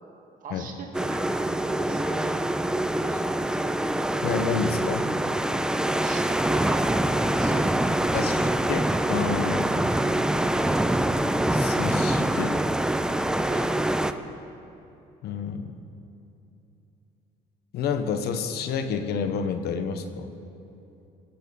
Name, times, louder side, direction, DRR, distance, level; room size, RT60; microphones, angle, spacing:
voice 1, 0.4-2.4 2.9-3.4 5.8-8.4 13.5-13.7, right 4 dB, 50° right, 1 dB, 2.1 m, -40 dB
sound 1, 0.9-14.1, right 1 dB, 5° right, 0.5 m, -25 dB
voice 2, 4.2-5.1 8.1-9.9 11.5-12.6 15.2-15.7 17.7-20.3, left 6 dB, 70° left, 8 dB, 1.1 m, -29 dB
22.0 x 8.2 x 5.5 m, 2.9 s
cardioid pair, 110°, 17 cm